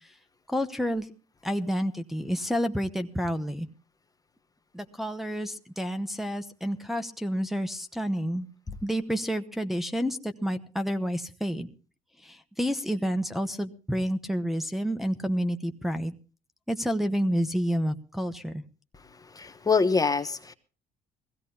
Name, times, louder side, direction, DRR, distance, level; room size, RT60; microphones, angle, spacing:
voice 1, 0.5-1.1 1.4-3.7 4.7-8.5 8.8-11.7 12.2-16.1 16.7-18.6, equal, ahead, 4 dB, 1.0 m, -29 dB
voice 2, 19.4-20.5, left 4 dB, 20° left, 9 dB, 1.0 m, -25 dB
21.5 x 16.0 x 2.8 m, 0.36 s
cardioid pair, 110°, 17 cm